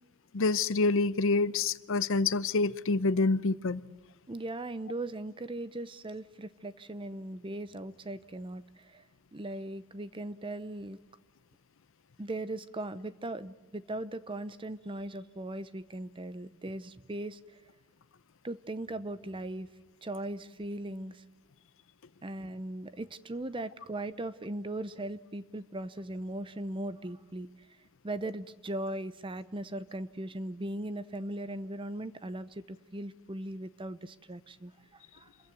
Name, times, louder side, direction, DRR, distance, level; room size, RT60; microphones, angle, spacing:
voice 1, 0.3-3.8, left 3 dB, 65° left, 16 dB, 0.6 m, -27 dB
voice 2, 4.3-9.0 9.3-11.0 12.2-17.6 18.4-19.7 20.0-21.2 22.2-27.5 28.0-35.3, right 1 dB, 25° right, 14 dB, 0.7 m, -39 dB
27.5 x 15.0 x 9.2 m, 1.3 s
head